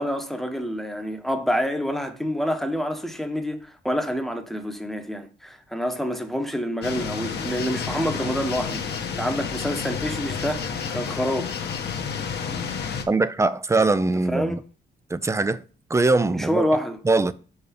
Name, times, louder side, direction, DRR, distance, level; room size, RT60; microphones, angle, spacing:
voice 1, 0.0-11.7 14.3-14.6 16.3-17.0, equal, ahead, 1.1 m, -27 dB
sound 1, 6.8-13.0, left 6 dB, 55° left, 1.3 m, -30 dB
voice 2, 13.1-14.6 15.1-15.6 15.9-16.7 17.0-17.3, right 3 dB, 15° right, 0.5 m, -21 dB
6.3 x 4.8 x 5.2 m
cardioid pair, 90°, 20 cm